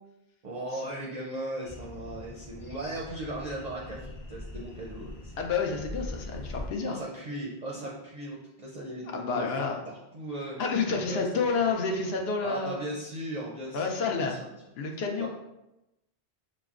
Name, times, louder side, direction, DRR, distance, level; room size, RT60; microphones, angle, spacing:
voice 1, 0.4-5.4 6.8-10.6 11.1-11.3 11.6-11.7 12.4-14.5 15.2-15.3, right 1 dB, 50° right, -4 dB, 0.5 m, -38 dB
sound 1, 1.6-6.7, left 1 dB, 40° left, 0.6 m, -42 dB
voice 2, 5.4-7.0 9.1-9.8 10.6-12.8 13.7-14.4 14.8-15.3, left 4 dB, 75° left, 1 dB, 0.8 m, -29 dB
5.7 x 2.0 x 2.4 m, 0.92 s
omnidirectional pair, 1.1 m